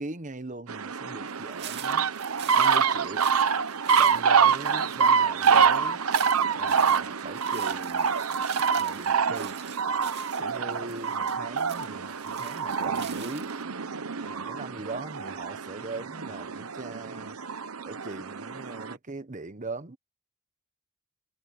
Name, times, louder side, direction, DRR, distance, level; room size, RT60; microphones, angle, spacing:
voice 1, 0.0-2.1 2.6-3.3 4.0-6.0 6.5-8.1 8.8-9.6 10.4-13.5 14.2-17.4 17.8-20.0, right 3 dB, 35° right, 1.1 m, -40 dB
sound 1, 0.7-19.0, right 6 dB, 90° right, 0.9 m, -26 dB
sound 2, 1.3-13.6, right 10 dB, 50° right, 2.6 m, -45 dB
head